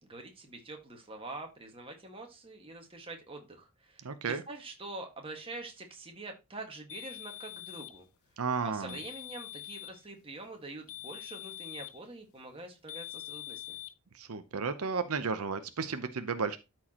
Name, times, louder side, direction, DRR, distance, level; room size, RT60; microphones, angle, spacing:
voice 1, 0.0-8.1 8.6-13.8, right 2 dB, 25° right, 3 dB, 1.7 m, -45 dB
voice 2, 4.0-4.4 8.4-9.0 14.1-16.6, right 5 dB, 80° right, 10 dB, 0.7 m, -33 dB
sound 1, 6.9-8.0 8.9-10.0 10.9-12.0 12.9-13.9, left 17 dB, 75° left, 0.6 m, -44 dB
12.5 x 4.7 x 2.9 m, 0.26 s
head